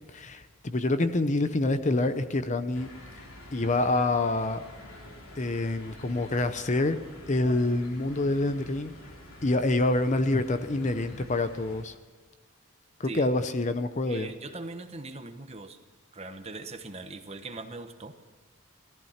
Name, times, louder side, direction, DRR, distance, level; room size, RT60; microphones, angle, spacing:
voice 1, 0.1-2.9 3.5-4.6 5.4-7.0 7.3-8.9 9.4-11.9 13.0-14.3, left 2 dB, 35° left, 10 dB, 0.7 m, -26 dB
sound 1, 2.7-11.8, left 1 dB, 70° left, 3.4 m, -47 dB
voice 2, 14.1-15.8 16.1-18.2, right 3 dB, 30° right, 7 dB, 1.2 m, -40 dB
17.0 x 14.0 x 5.8 m, 1.4 s
head